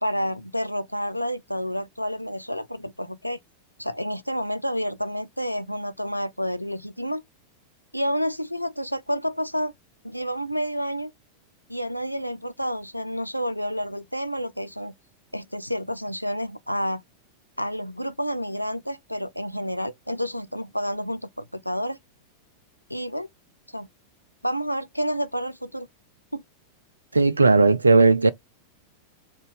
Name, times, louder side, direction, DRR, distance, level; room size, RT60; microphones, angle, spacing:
voice 1, 0.0-3.4 3.8-7.2 7.9-9.7 10.0-11.1 11.7-14.9 15.3-17.0 17.6-22.0 22.9-23.3 23.7-23.9 24.4-25.9 26.3-26.4, equal, 90° left, 0.3 m, -29 dB
voice 2, 27.1-28.3, right 3 dB, 80° right, 0.3 m, -16 dB
3.7 x 2.4 x 3.7 m
figure-of-eight pair, 90°, 0 cm